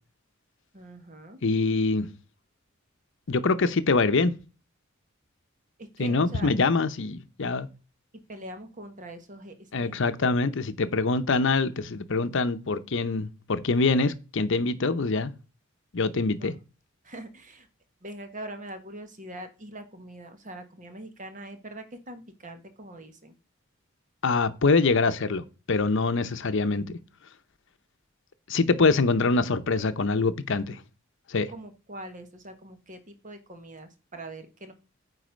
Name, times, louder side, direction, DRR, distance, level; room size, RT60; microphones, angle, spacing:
voice 1, 0.7-1.4 5.8-6.5 8.3-10.0 16.4-16.6 17.0-17.7 18.0-23.3 31.5-34.7, right 1 dB, 40° right, 1.4 m, -43 dB
voice 2, 1.4-2.1 3.3-4.3 6.0-7.7 9.7-15.3 15.9-16.5 24.2-26.9 28.5-30.8 31.3-31.5, left 3 dB, 65° left, 0.7 m, -24 dB
9.5 x 4.1 x 5.2 m
head